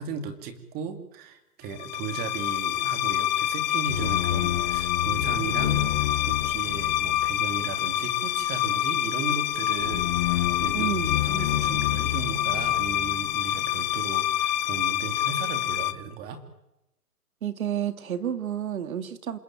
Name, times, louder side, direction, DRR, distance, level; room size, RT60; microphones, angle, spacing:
voice 1, 0.0-5.9 6.2-10.9 11.3-16.4, right 5 dB, 20° right, 8 dB, 2.6 m, -36 dB
sound 1, 1.8-15.9, left 12 dB, 30° left, 1.0 m, -26 dB
voice 2, 10.7-11.2 17.4-19.4, right 9 dB, 60° right, 10 dB, 2.2 m, -30 dB
27.5 x 21.0 x 9.0 m, 0.88 s
hypercardioid pair, 155°, 47 cm